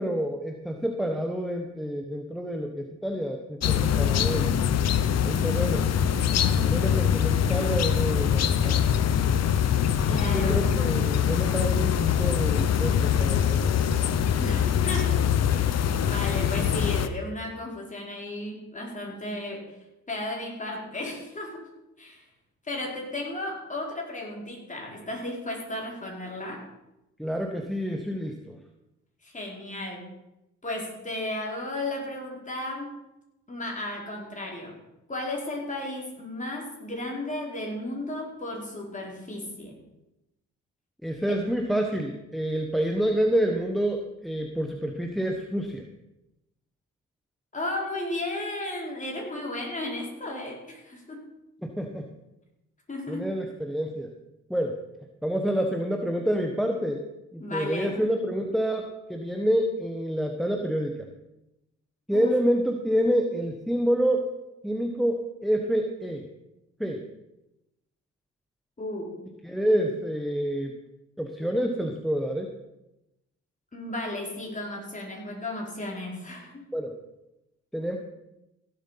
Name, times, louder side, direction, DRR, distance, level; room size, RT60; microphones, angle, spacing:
voice 1, 0.0-4.6 5.2-5.9 6.6-8.8 10.0-13.7 27.2-28.6 41.0-45.9 51.6-52.1 53.1-54.1 54.5-54.8 55.2-57.0 57.3-61.1 62.1-64.3 64.6-66.3 66.8-67.0 69.4-70.7 71.2-72.5 76.7-76.9 77.7-78.0, equal, ahead, 3 dB, 1.2 m, -28 dB
sound 1, 3.6-17.1, left 8 dB, 55° left, 0.9 m, -23 dB
voice 2, 10.0-10.5 14.4-19.7 20.1-21.7 22.0-22.2 22.6-26.6 29.2-30.1 30.6-32.9 33.5-34.8 35.1-39.8 41.3-41.4 47.5-51.3 52.9-53.2 57.4-58.0 62.1-62.3 68.8-69.1 73.7-76.6, left 1 dB, 25° left, -1 dB, 4.6 m, -34 dB
16.0 x 7.8 x 5.8 m, 0.93 s
cardioid pair, 90°, 30 cm